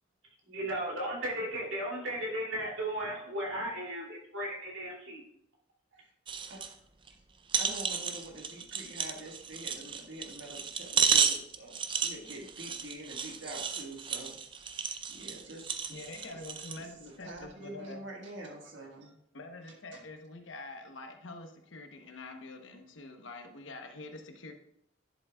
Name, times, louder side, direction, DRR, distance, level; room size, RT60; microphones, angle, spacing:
voice 1, 0.5-5.2, right 1 dB, 80° right, -3 dB, 2.6 m, -35 dB
sound 1, 6.3-6.7 7.1-7.2 7.5-16.8 17.4-17.5, right 6 dB, 25° right, 0.4 m, -32 dB
voice 2, 7.6-16.4 16.7-19.1 19.9-20.0, right 1 dB, 65° right, 0 dB, 1.6 m, -46 dB
voice 3, 15.9-18.0 19.3-24.5, left 2 dB, 75° left, 5 dB, 1.0 m, -46 dB
10.5 x 7.1 x 2.3 m, 0.74 s
head